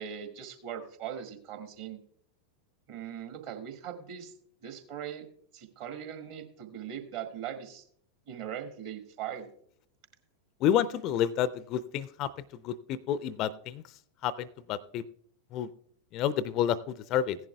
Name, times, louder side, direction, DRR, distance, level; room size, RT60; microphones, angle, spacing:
voice 1, 0.0-2.0 2.9-4.3 4.6-5.2 5.5-7.8 8.3-9.5, right 9 dB, 50° right, 5 dB, 1.7 m, -40 dB
voice 2, 10.6-12.3 12.6-13.8 14.2-15.0 15.5-15.7 16.1-17.4, left 10 dB, 40° left, 19 dB, 0.5 m, -29 dB
16.0 x 11.0 x 2.2 m, 0.63 s
figure-of-eight pair, 90°, 0 cm